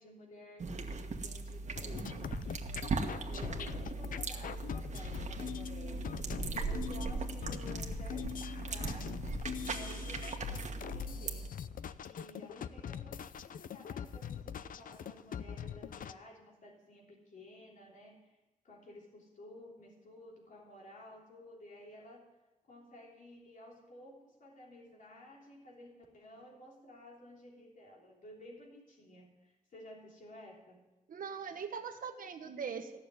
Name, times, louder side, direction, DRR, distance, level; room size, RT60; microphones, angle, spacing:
voice 1, 0.0-9.2 9.6-11.7 12.0-18.4 18.6-22.3 22.7-30.8, left 1 dB, 70° left, -2 dB, 3.4 m, -54 dB
sound 1, 0.6-11.5, right 3 dB, 60° right, 1.4 m, -39 dB
sound 2, 1.8-16.1, left 8 dB, 90° left, 0.6 m, -43 dB
voice 2, 31.1-33.0, right 6 dB, 85° right, 6 dB, 1.4 m, -41 dB
16.0 x 6.8 x 9.8 m, 1.0 s
wide cardioid pair, 120°, 14 cm